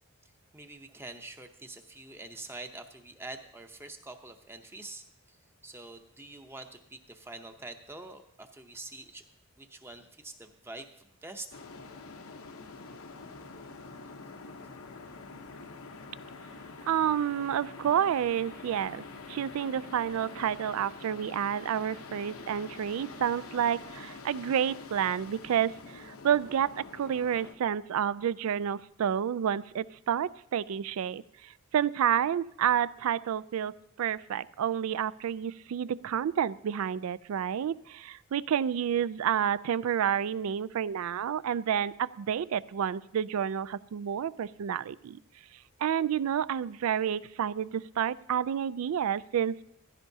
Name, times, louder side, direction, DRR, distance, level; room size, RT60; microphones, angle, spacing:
voice 1, 0.5-5.4 5.6-9.2 9.6-11.5, right 2 dB, 10° right, 6 dB, 0.7 m, -45 dB
sound 1, 11.5-27.5, left 3 dB, 80° left, 0.9 m, -46 dB
voice 2, 16.9-33.7 34.0-45.2 45.8-49.6, right 9 dB, 80° right, 18 dB, 0.3 m, -30 dB
15.0 x 13.0 x 2.7 m, 0.78 s
head